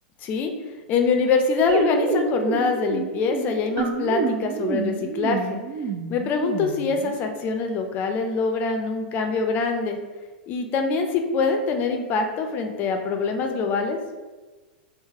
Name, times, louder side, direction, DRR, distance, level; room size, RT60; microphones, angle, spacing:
voice 1, 0.9-5.6 6.1-10.0 10.5-14.0, left 4 dB, 35° left, 4 dB, 0.6 m, -24 dB
sound 1, 1.7-7.2, right 5 dB, 40° right, 0.4 m, -28 dB
3.9 x 2.1 x 4.4 m, 1.3 s
figure-of-eight pair, 95°, 5 cm